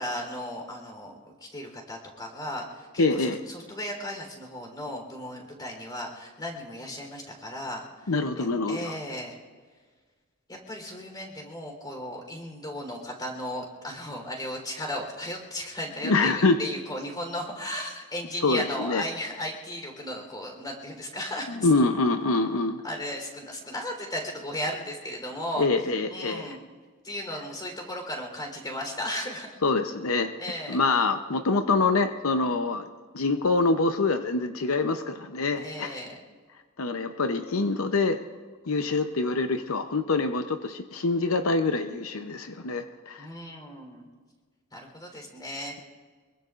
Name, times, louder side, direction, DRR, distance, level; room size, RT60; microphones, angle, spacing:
voice 1, 0.0-9.4 10.5-16.3 16.6-21.7 22.8-25.7 26.1-26.6 27.0-29.5 30.4-30.8 35.6-36.2 43.2-44.1 44.7-45.8, left 1 dB, 20° left, 1 dB, 3.7 m, -35 dB
voice 2, 3.0-3.4 8.1-8.9 16.0-16.6 18.4-19.0 21.6-22.8 25.6-26.5 29.6-30.3 30.7-32.9 33.1-35.9 36.8-38.2 38.7-43.3, left 3 dB, 90° left, 7 dB, 0.8 m, -25 dB
25.5 x 22.5 x 2.5 m, 1.5 s
head